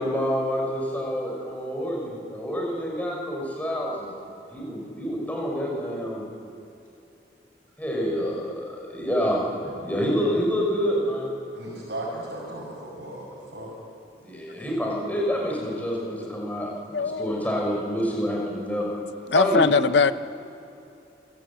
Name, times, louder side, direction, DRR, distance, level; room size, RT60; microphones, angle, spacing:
voice 1, 0.0-4.1 4.5-6.2 7.8-11.3 14.2-16.7 17.0-18.9 19.3-19.7, equal, 10° left, -2 dB, 6.2 m, -27 dB
voice 2, 11.5-13.7, right 1 dB, 75° right, -5 dB, 6.1 m, -36 dB
voice 3, 16.9-17.4 19.3-20.1, left 5 dB, 80° left, 13 dB, 0.7 m, -21 dB
28.0 x 16.0 x 8.8 m, 2.7 s
head